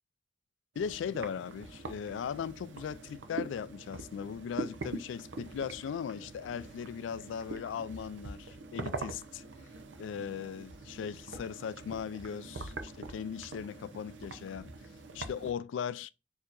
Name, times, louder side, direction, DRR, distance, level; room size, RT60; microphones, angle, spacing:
voice 1, 0.8-9.4 10.0-14.7 15.1-16.1, left 7 dB, 85° left, 0.3 m, -38 dB
sound 1, 0.8-15.5, right 3 dB, 75° right, 0.6 m, -44 dB
6.4 x 2.8 x 2.5 m
head